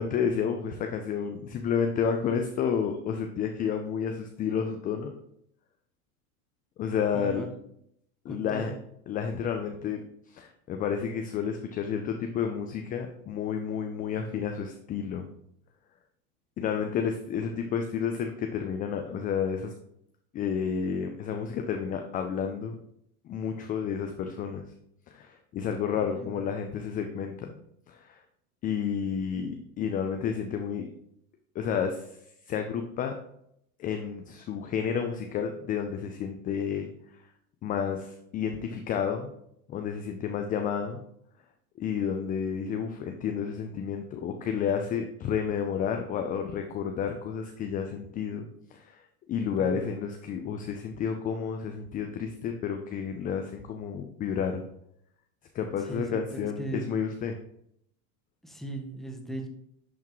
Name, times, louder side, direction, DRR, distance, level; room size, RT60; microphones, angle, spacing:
voice 1, 0.0-5.1 6.8-7.5 8.2-8.7 9.1-10.0 10.3-15.3 16.6-19.7 20.3-22.8 23.2-24.6 25.1-27.6 27.9-28.2 28.6-30.9 31.6-32.2 32.5-33.1 33.8-36.9 37.6-39.3 39.7-41.0 41.8-48.4 48.7-49.0 49.3-54.6 55.5-57.4, left 7 dB, 20° left, 5 dB, 0.3 m, -31 dB
voice 2, 7.1-7.5 8.3-8.7 26.0-26.4 49.6-49.8 55.9-56.8 58.4-59.5, right 2 dB, ahead, 3 dB, 0.9 m, -38 dB
10.5 x 3.6 x 3.0 m, 0.74 s
hypercardioid pair, 110°, 45 cm